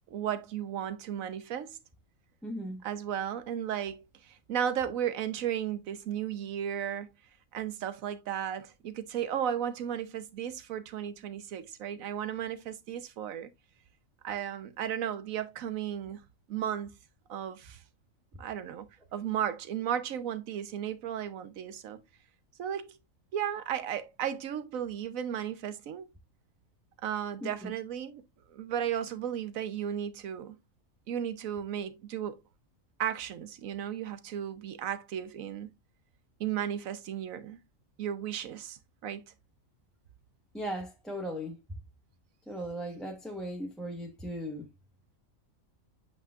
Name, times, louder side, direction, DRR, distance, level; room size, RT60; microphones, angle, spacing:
voice 1, 0.1-1.8 2.8-7.1 7.5-13.5 14.2-16.2 16.5-16.9 17.3-17.8 18.4-18.9 19.1-22.0 22.6-23.0 23.3-26.1 27.0-28.2 28.5-30.6 31.1-32.4 33.0-35.7 36.4-37.6 38.0-39.2, right 9 dB, 80° right, 1.2 m, -34 dB
voice 2, 2.4-2.8 27.4-27.7 40.5-41.6 42.5-44.7, equal, ahead, 0.9 m, -37 dB
8.3 x 5.4 x 2.4 m
omnidirectional pair, 1.4 m